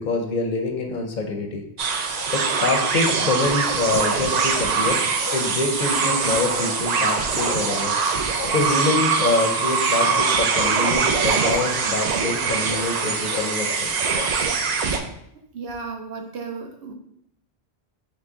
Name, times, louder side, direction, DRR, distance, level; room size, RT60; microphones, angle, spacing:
voice 1, 0.0-1.6 2.0-5.0 5.3-7.9 8.5-13.9, left 3 dB, 55° left, 2 dB, 0.7 m, -25 dB
sound 1, 1.8-15.0, right 5 dB, 55° right, 0.5 m, -23 dB
sound 2, 2.1-3.2 3.6-4.5 4.9-5.5 5.8-6.7 7.0-7.9 8.3-8.6 9.2-9.4 9.9-10.8 11.4-11.6 12.5-14.3, left 7 dB, 85° left, 0.9 m, -37 dB
voice 2, 15.3-16.9, right 4 dB, 70° right, 4 dB, 0.9 m, -34 dB
5.6 x 2.2 x 3.7 m, 0.73 s
omnidirectional pair, 1.1 m